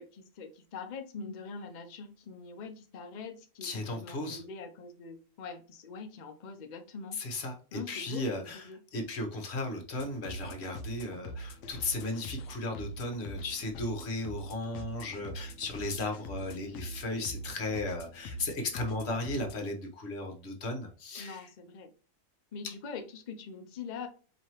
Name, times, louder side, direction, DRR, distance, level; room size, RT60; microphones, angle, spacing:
voice 1, 0.0-7.2 7.7-8.3 8.7-8.8 21.2-21.9 22.5-24.1, left 5 dB, 90° left, 0.4 m, -43 dB
voice 2, 3.6-4.4 7.1-21.5, left 2 dB, 50° left, 1.1 m, -36 dB
sound 1, 10.0-19.6, right 1 dB, 65° left, 0.8 m, -43 dB
4.7 x 3.0 x 2.9 m
omnidirectional pair, 1.6 m